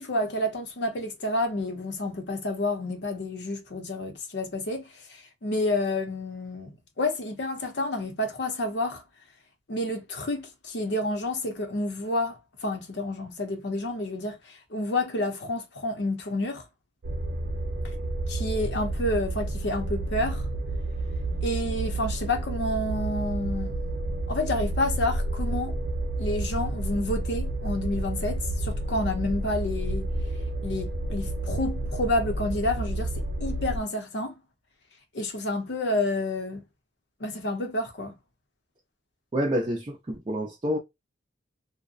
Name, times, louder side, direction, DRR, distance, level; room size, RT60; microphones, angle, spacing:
voice 1, 0.0-9.0 9.7-16.6 18.3-20.4 21.4-23.8 24.3-25.8 26.2-30.1 30.6-34.3 35.1-36.6 37.2-38.1, left 1 dB, 65° left, 0.7 m, -29 dB
sound 1, 17.0-33.8, right 1 dB, 75° right, 0.5 m, -30 dB
voice 2, 39.3-40.8, equal, 25° right, 0.4 m, -28 dB
2.7 x 2.1 x 2.4 m
head